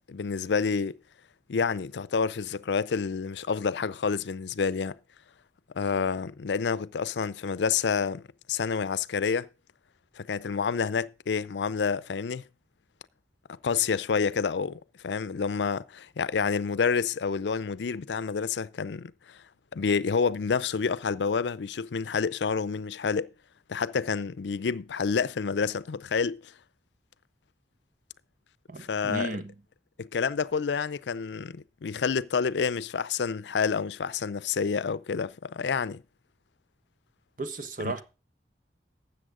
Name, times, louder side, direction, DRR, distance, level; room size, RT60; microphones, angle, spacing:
voice 1, 0.1-1.0 1.5-5.0 5.7-9.5 10.2-12.4 13.6-19.4 19.7-23.3 23.7-26.5 28.9-29.4 30.0-36.0 37.8-38.0, left 5 dB, 85° left, 0.5 m, -28 dB
voice 2, 28.7-29.5 37.4-38.0, right 2 dB, 50° right, 1.4 m, -34 dB
13.0 x 8.4 x 3.7 m
head